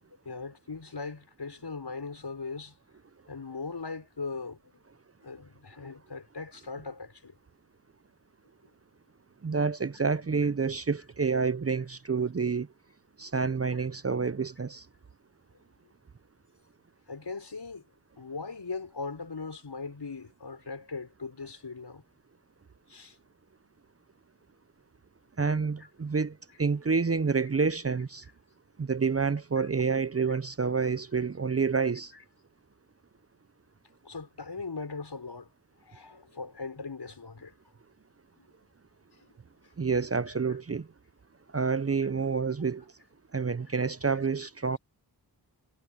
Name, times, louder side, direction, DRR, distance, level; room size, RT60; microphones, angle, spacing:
voice 1, 0.2-2.7 3.3-4.6 5.2-7.3 17.1-17.8 18.2-22.0 22.9-23.2 25.8-25.9 29.6-29.7 30.3-30.4 34.0-35.5 35.8-37.5 38.4-38.5 39.2-39.3, left 4 dB, 65° left, 6.6 m, -39 dB
voice 2, 9.4-12.7 13.2-14.8 25.4-26.3 26.6-28.2 28.8-32.1 39.8-40.9 41.5-42.8 43.3-44.8, right 5 dB, 35° right, 0.7 m, -28 dB
cardioid pair, 45°, 44 cm